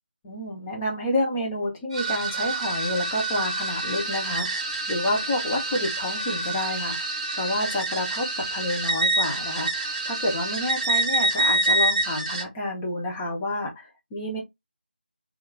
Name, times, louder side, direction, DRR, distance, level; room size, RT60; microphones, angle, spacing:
voice 1, 0.2-14.4, left 1 dB, 10° left, 0.5 m, -29 dB
sound 1, 1.9-12.4, right 2 dB, 30° right, 0.8 m, -27 dB
2.9 x 2.4 x 3.1 m
figure-of-eight pair, 165°, 6 cm